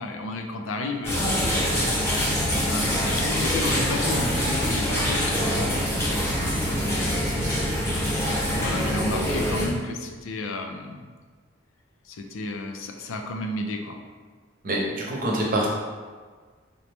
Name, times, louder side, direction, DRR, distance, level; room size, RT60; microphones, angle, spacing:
voice 1, 0.0-1.6 2.5-6.0 6.8-7.8 8.5-11.1 12.1-14.0, left 2 dB, 75° left, 3 dB, 0.4 m, -33 dB
sound 1, 1.0-9.7, equal, 10° left, 0.8 m, -24 dB
voice 2, 14.6-15.7, right 1 dB, 45° right, -3 dB, 0.8 m, -25 dB
4.0 x 3.4 x 3.0 m, 1.5 s
head